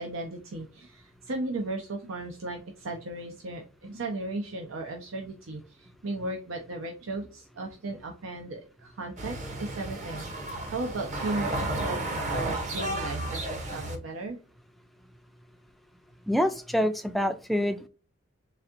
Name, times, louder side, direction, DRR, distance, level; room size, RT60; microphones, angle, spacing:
voice 1, 0.0-14.4, right 2 dB, 90° right, 2 dB, 0.7 m, -36 dB
sound 1, 9.2-14.0, right 1 dB, 35° right, 0.8 m, -33 dB
voice 2, 16.3-17.9, equal, ahead, 8 dB, 0.3 m, -26 dB
4.1 x 3.4 x 2.5 m, 0.35 s
head